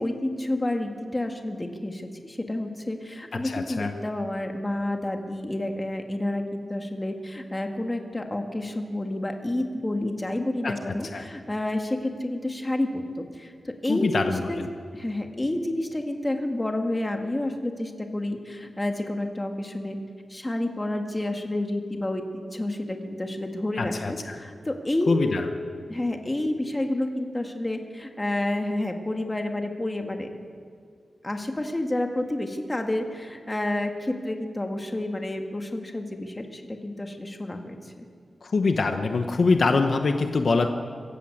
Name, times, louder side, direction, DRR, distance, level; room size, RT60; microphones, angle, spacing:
voice 1, 0.0-14.7 14.9-20.0 20.3-25.5 25.9-30.3 31.2-38.0, left 1 dB, 15° left, 4 dB, 1.8 m, -29 dB
voice 2, 3.4-3.9 10.6-11.2 13.9-14.4 23.8-24.4 25.1-25.4 38.4-40.7, left 3 dB, 50° left, 6 dB, 1.2 m, -24 dB
25.5 x 15.0 x 8.0 m, 2.1 s
wide cardioid pair, 175°, 0 cm